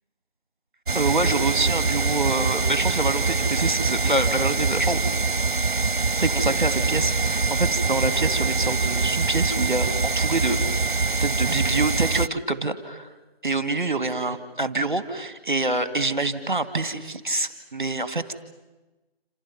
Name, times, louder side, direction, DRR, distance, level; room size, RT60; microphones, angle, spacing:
voice 1, 0.9-5.0 6.2-10.6 11.2-13.1 13.4-18.3, right 2 dB, 25° right, 11 dB, 2.0 m, -26 dB
sound 1, 0.9-12.3, right 4 dB, 55° right, 0.8 m, -24 dB
28.0 x 28.0 x 6.0 m, 1.1 s
figure-of-eight pair, 175°, 31 cm